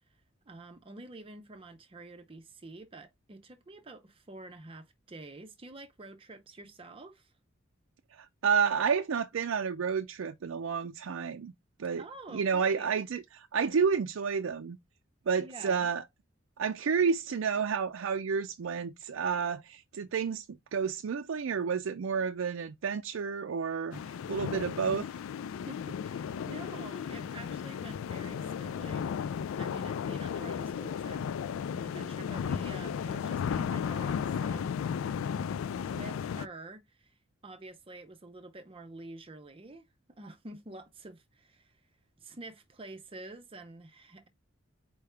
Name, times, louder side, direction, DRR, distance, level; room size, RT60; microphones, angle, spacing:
voice 1, 0.5-7.3 12.0-12.9 15.4-15.9 25.7-31.3 31.7-34.7 35.8-37.1 37.4-39.9 40.2-41.7 42.2-44.3, right 2 dB, 30° right, 0.5 m, -48 dB
voice 2, 8.2-11.5 11.8-12.0 12.3-14.8 15.3-16.0 16.6-24.0 24.3-25.1, right 6 dB, 85° right, 0.4 m, -30 dB
sound 1, 23.9-36.5, left 7 dB, 85° left, 0.3 m, -34 dB
4.6 x 3.4 x 3.3 m
head